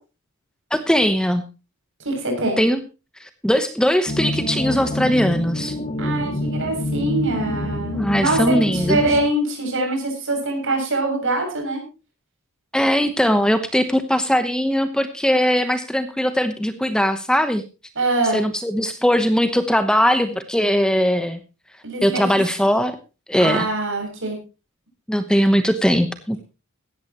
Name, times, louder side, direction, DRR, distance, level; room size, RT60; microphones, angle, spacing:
voice 1, 0.7-1.4 2.6-2.8 3.2-5.7 7.9-9.0 12.7-17.6 18.3-21.4 22.0-23.0 23.3-23.7 25.1-26.4, equal, 5° left, 9 dB, 1.0 m, -20 dB
voice 2, 2.0-2.6 6.0-11.8 18.0-18.4 21.8-22.2 23.4-24.4, right 2 dB, 60° right, 2 dB, 7.4 m, -23 dB
sound 1, 4.1-9.2, left 1 dB, 35° left, 2.2 m, -26 dB
17.0 x 13.5 x 3.0 m, 0.31 s
head